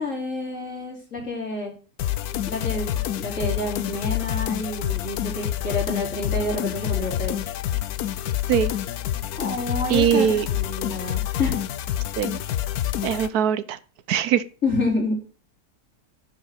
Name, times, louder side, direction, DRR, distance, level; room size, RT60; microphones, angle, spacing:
voice 1, 0.0-1.7 2.5-7.4 9.4-11.6 14.6-15.2, left 2 dB, 50° left, -2 dB, 4.3 m, -28 dB
sound 1, 2.0-13.3, left 12 dB, 70° left, 1.2 m, -27 dB
voice 2, 9.9-10.5 12.2-12.4 13.0-13.8 14.1-14.4, right 9 dB, 70° right, 17 dB, 1.2 m, -21 dB
10.5 x 5.8 x 6.5 m, 0.38 s
omnidirectional pair, 1.8 m